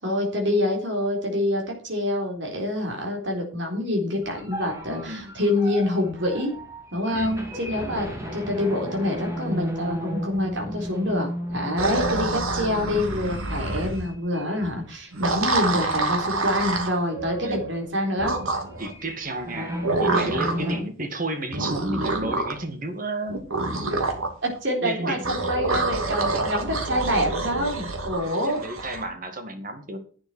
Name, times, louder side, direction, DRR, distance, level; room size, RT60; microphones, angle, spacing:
voice 1, 0.0-6.5 6.9-18.4 20.5-20.8 24.4-28.6, left 1 dB, 60° right, 1 dB, 4.0 m, -26 dB
sound 1, 4.2-14.9 15.3-15.5 16.0-16.4 16.7-20.8, equal, 15° right, 2.9 m, -34 dB
voice 2, 7.1-7.5 17.4-17.7 18.8-19.7 20.0-23.4 24.8-25.4 26.3-26.5 28.4-30.0, right 2 dB, 40° right, 7 dB, 2.1 m, -32 dB
sound 2, 11.8-14.0 15.1-17.0 18.2-18.9 19.8-20.7 21.5-22.6 23.3-24.3 25.2-29.0, right 2 dB, 85° right, 2.7 m, -27 dB
11.5 x 8.7 x 4.5 m, 0.40 s
head